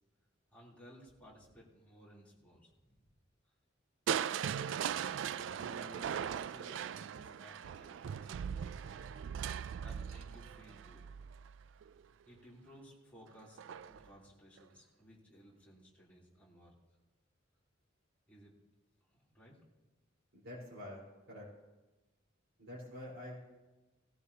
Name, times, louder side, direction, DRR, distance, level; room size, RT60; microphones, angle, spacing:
voice 1, 0.5-2.9 4.9-9.1 9.7-11.2 12.2-16.7 18.3-18.5 19.1-19.6, equal, 10° left, -6 dB, 3.1 m, -58 dB
Crushing, 4.1-12.0 13.6-14.1 14.6-14.7, right 8 dB, 70° right, 0.3 m, -39 dB
voice 2, 20.3-21.0 21.3-21.5 22.6-23.3, left 1 dB, 90° right, -7 dB, 4.0 m, -47 dB
17.5 x 15.0 x 2.8 m, 1.1 s
head